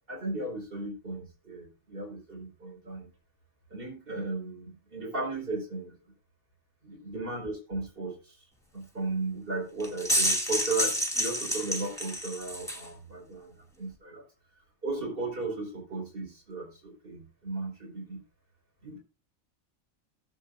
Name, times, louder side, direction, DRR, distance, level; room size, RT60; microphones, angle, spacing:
voice 1, 0.1-3.1 3.7-6.0 6.8-8.4 8.7-14.2 14.8-18.2 18.8-19.0, right 2 dB, 40° right, -1 dB, 5.2 m, -36 dB
sound 1, 9.8-12.9, equal, ahead, 2.2 m, -29 dB
20.0 x 7.8 x 2.6 m, 0.32 s
omnidirectional pair, 1.4 m